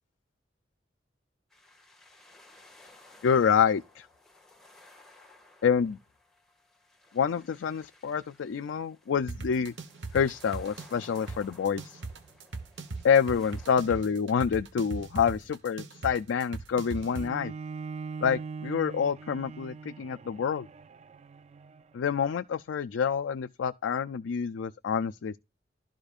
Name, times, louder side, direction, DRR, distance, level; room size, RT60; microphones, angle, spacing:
sound 1, 1.5-13.8, left 2 dB, ahead, 1.8 m, -57 dB
voice 1, 3.2-4.1 5.6-6.0 7.1-9.7 10.1-12.0 13.0-17.5 18.2-20.7 21.9-25.4, left 7 dB, 85° left, 0.4 m, -27 dB
sound 2, 9.3-17.3, right 3 dB, 70° right, 1.0 m, -39 dB
Bowed string instrument, 17.1-22.3, right 5 dB, 35° right, 0.3 m, -42 dB
12.0 x 5.0 x 2.4 m
head